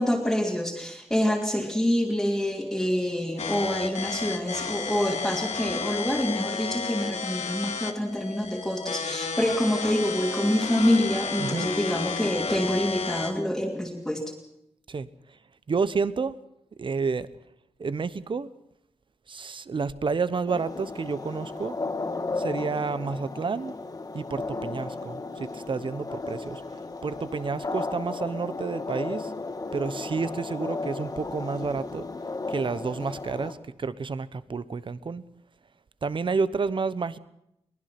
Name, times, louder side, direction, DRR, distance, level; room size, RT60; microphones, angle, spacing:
voice 1, 0.0-14.2, left 1 dB, 5° left, -1 dB, 2.6 m, -26 dB
sound 1, 3.4-13.4, left 5 dB, 85° left, 2.3 m, -32 dB
voice 2, 15.7-16.4 16.8-17.3 17.8-18.5 19.3-21.8 22.4-23.7 24.1-26.6 27.0-29.3 29.7-32.1 32.5-35.2 36.0-37.2, right 4 dB, 50° right, 16 dB, 0.9 m, -30 dB
sound 2, 20.5-33.5, left 3 dB, 35° left, 1.8 m, -34 dB
23.0 x 19.5 x 5.9 m, 0.79 s
wide cardioid pair, 145°, 11 cm